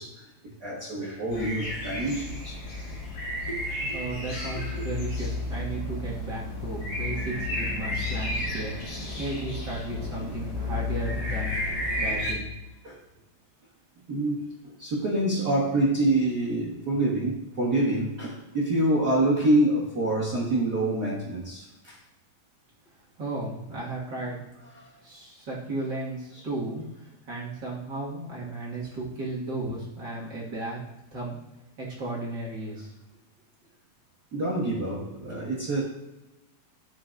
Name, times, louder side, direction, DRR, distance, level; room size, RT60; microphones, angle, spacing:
voice 1, 0.0-2.6 3.4-4.0 4.7-4.8 9.7-9.8 12.8-13.0 14.1-22.0 24.7-24.9 26.3-26.4 34.3-35.8, right 1 dB, 85° right, -6 dB, 0.8 m, -27 dB
sound 1, 1.3-12.3, left 1 dB, 65° left, 4.3 m, -32 dB
voice 2, 3.9-11.7 12.0-12.5 23.2-24.5 25.0-30.8 31.1-31.4 31.8-32.9, right 2 dB, 40° right, -6 dB, 1.8 m, -34 dB
11.5 x 7.4 x 2.5 m, 0.99 s
omnidirectional pair, 4.1 m